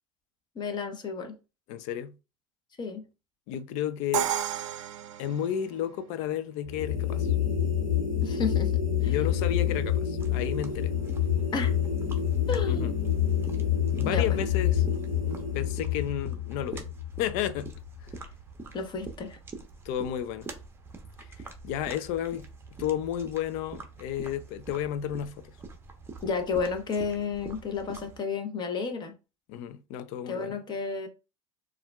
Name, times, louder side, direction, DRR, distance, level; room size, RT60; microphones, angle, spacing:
voice 1, 0.5-1.3 2.8-3.0 8.2-9.2 11.5-11.7 12.5-12.9 14.0-14.2 18.7-19.4 26.2-29.1 30.3-31.1, left 5 dB, 25° left, 1.0 m, -32 dB
voice 2, 1.7-2.1 3.5-4.3 5.2-7.3 9.0-10.9 12.7-12.9 13.9-14.9 15.5-16.8 17.2-17.7 18.1-18.2 19.8-20.5 21.2-22.5 22.8-25.5 29.5-30.6, left 10 dB, 45° left, 0.5 m, -32 dB
Crash cymbal, 4.1-6.1, right 11 dB, 65° right, 0.6 m, -32 dB
sound 1, 6.7-18.0, left 9 dB, 75° left, 1.2 m, -27 dB
sound 2, 10.2-28.2, right 3 dB, 15° right, 0.9 m, -46 dB
6.8 x 2.5 x 2.3 m
figure-of-eight pair, 80°, 17 cm